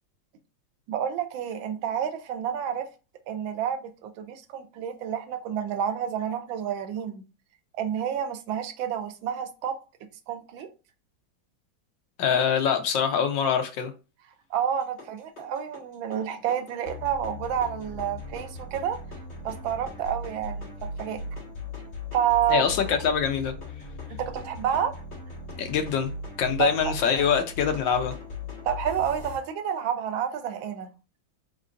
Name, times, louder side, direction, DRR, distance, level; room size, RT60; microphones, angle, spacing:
voice 1, 0.9-2.9 3.3-7.2 7.8-9.8 10.3-10.7 14.5-19.0 19.4-20.7 21.0-21.2 22.1-22.8 24.2-24.9 26.6-26.9 28.6-30.9, right 9 dB, 80° right, 1.4 m, -29 dB
voice 2, 12.2-13.9 22.5-23.5 25.6-26.1 26.4-28.1, left 7 dB, 75° left, 1.3 m, -24 dB
sound 1, 14.7-29.4, left 2 dB, 35° left, 2.0 m, -39 dB
4.5 x 3.9 x 2.5 m
omnidirectional pair, 2.2 m